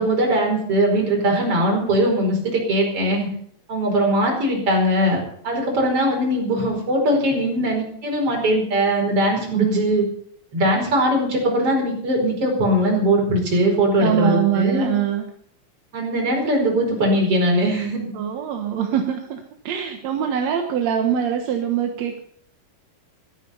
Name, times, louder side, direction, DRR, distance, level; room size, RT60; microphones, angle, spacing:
voice 1, 0.0-3.3 3.7-5.2 5.4-10.0 10.5-14.9 15.9-18.0, right 1 dB, 40° right, 1 dB, 5.8 m, -20 dB
voice 2, 14.0-15.3 18.1-22.2, right 9 dB, 60° right, 4 dB, 2.1 m, -23 dB
15.0 x 13.5 x 5.7 m, 0.63 s
omnidirectional pair, 4.1 m